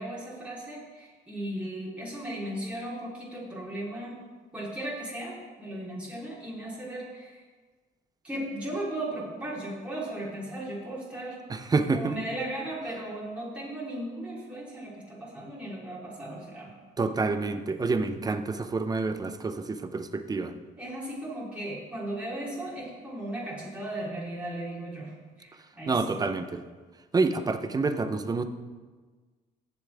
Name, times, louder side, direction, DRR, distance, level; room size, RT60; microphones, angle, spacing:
voice 1, 0.0-4.2 4.5-7.4 8.2-11.4 11.9-16.7 20.8-25.1 25.4-26.2, right 1 dB, 5° right, -7 dB, 3.6 m, -36 dB
voice 2, 11.5-12.2 17.0-20.5 25.9-26.6 27.1-28.4, right 3 dB, 20° right, 9 dB, 0.8 m, -28 dB
17.0 x 7.1 x 3.5 m, 1.4 s
cardioid pair, 110°, 17 cm